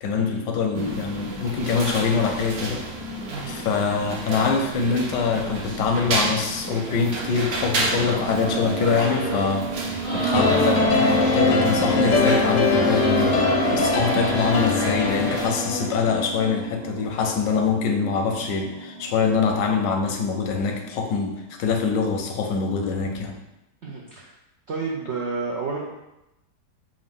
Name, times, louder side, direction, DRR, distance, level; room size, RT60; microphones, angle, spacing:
voice 1, 0.0-2.9 3.5-9.7 10.1-23.4, left 5 dB, 90° left, 4 dB, 1.3 m, -24 dB
sound 1, 0.7-15.5, right 2 dB, 65° right, 1.2 m, -31 dB
sound 2, 8.2-22.1, right 4 dB, 25° right, 1.2 m, -32 dB
sound 3, 10.3-16.6, left 3 dB, 65° left, 0.8 m, -22 dB
voice 2, 23.8-24.3 24.7-25.8, right 4 dB, 90° right, -2 dB, 0.6 m, -30 dB
4.9 x 2.5 x 3.6 m, 0.92 s
omnidirectional pair, 1.9 m